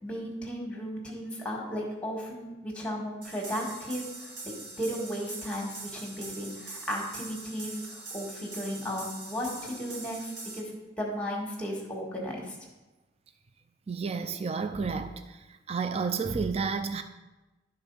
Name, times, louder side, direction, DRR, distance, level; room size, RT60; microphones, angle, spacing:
voice 1, 0.0-4.3 4.8-10.7 11.0-12.6, equal, 5° left, 1.6 m, -35 dB
sound 1, 3.2-10.6, right 3 dB, 60° right, 1.8 m, -43 dB
voice 2, 13.9-15.2 15.7-17.0, right 5 dB, 35° right, 0.4 m, -30 dB
12.0 x 4.0 x 5.4 m
head